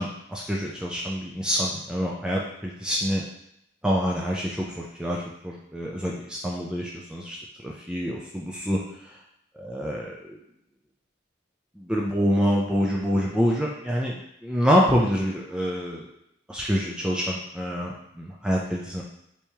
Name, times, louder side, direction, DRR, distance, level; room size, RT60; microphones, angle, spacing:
voice 1, 0.0-3.2 3.8-7.4 7.6-8.8 9.6-10.1 11.8-16.1 16.5-19.0, equal, 5° right, -3 dB, 0.3 m, -26 dB
3.4 x 3.0 x 2.8 m, 0.78 s
head